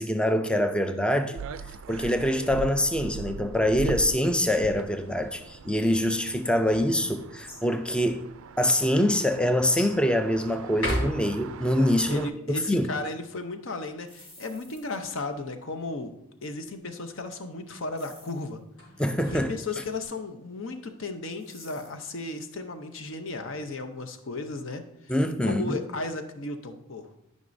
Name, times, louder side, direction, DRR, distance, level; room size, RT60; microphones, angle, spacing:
voice 1, 0.0-1.4 1.9-8.3 8.6-12.9 19.0-19.6 25.1-25.8, left 1 dB, 5° left, 7 dB, 0.3 m, -25 dB
sound 1, 1.4-12.3, right 5 dB, 70° right, 0.3 m, -41 dB
sound 2, 6.4-7.7 8.5-8.6 9.7-10.0 10.7-11.7 18.8-20.1, equal, 85° left, 3.3 m, -35 dB
voice 2, 12.1-16.1 16.4-18.6 19.3-24.8 25.4-27.1, left 3 dB, 65° left, 8 dB, 0.7 m, -35 dB
sound 3, 14.0-15.2 18.0-18.5 21.4-22.1, left 1 dB, 30° left, 2.8 m, -52 dB
12.5 x 5.3 x 2.6 m, 0.81 s
head